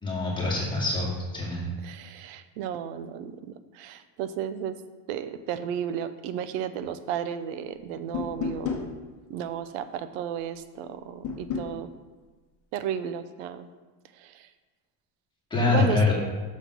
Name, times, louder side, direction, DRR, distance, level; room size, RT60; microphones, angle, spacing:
voice 1, 0.0-1.7 15.5-16.1, left 3 dB, 10° left, -5 dB, 2.1 m, -25 dB
voice 2, 1.8-4.8 5.1-8.9 9.3-11.9 12.7-13.7 14.2-14.5 15.7-16.0, right 9 dB, 80° right, 12 dB, 0.7 m, -33 dB
sound 1, 8.1-8.9 11.2-11.7, left 6 dB, 35° left, 1.0 m, -31 dB
6.4 x 5.2 x 6.1 m, 1.3 s
cardioid pair, 145°, 50 cm